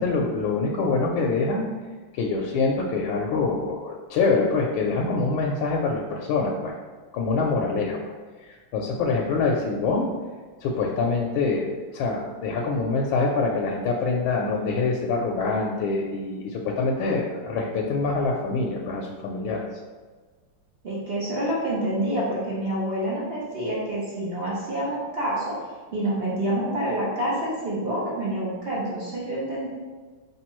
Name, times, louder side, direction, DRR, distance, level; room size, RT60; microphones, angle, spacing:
voice 1, 0.0-1.7 2.1-6.7 7.1-8.1 8.4-10.1 10.6-19.6, left 3 dB, 75° left, 0 dB, 1.3 m, -25 dB
voice 2, 20.8-25.5 25.9-29.7, right 1 dB, 60° right, -6 dB, 0.6 m, -27 dB
4.9 x 3.4 x 3.0 m, 1.4 s
omnidirectional pair, 2.3 m